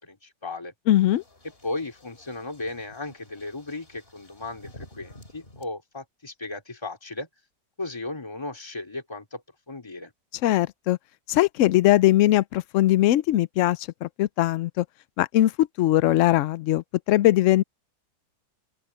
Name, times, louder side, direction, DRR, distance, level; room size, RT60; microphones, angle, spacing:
voice 1, 0.0-0.7 1.6-7.3 7.8-10.1, left 2 dB, 15° left, 3.0 m, -36 dB
voice 2, 0.9-1.2 10.4-11.0 11.3-14.8 15.2-17.6, left 14 dB, 80° left, 0.6 m, -21 dB
sound 1, 1.0-5.7, left 1 dB, 30° left, 4.2 m, -51 dB
open air
omnidirectional pair, 1.9 m